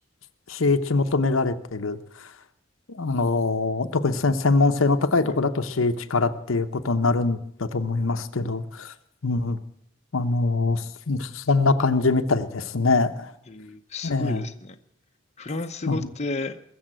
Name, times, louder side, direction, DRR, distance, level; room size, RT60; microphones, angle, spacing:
voice 1, 0.5-2.0 3.0-8.9 9.2-9.6 10.1-13.3 14.0-14.5 15.9-16.0, left 3 dB, 85° left, 8 dB, 0.9 m, -23 dB
voice 2, 13.5-14.8 15.4-16.6, left 3 dB, 35° left, 6 dB, 0.8 m, -32 dB
21.5 x 7.2 x 8.9 m, 0.73 s
head